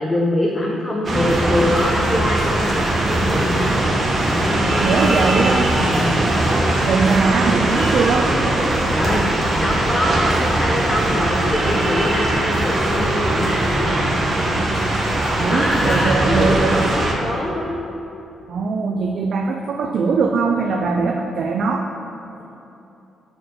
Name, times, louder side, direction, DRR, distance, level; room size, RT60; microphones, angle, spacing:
voice 1, 0.0-3.9 4.3-6.2 8.9-9.3 9.6-14.3 15.4-17.8, left 1 dB, 10° left, -3 dB, 0.7 m, -24 dB
sound 1, 1.0-17.1, right 1 dB, 35° right, 1.1 m, -20 dB
voice 2, 4.8-5.7 6.9-8.3 15.3-16.8 18.5-21.9, right 4 dB, 55° right, 3 dB, 0.4 m, -20 dB
6.6 x 4.5 x 6.5 m, 2.9 s
cardioid pair, 140°, 0 cm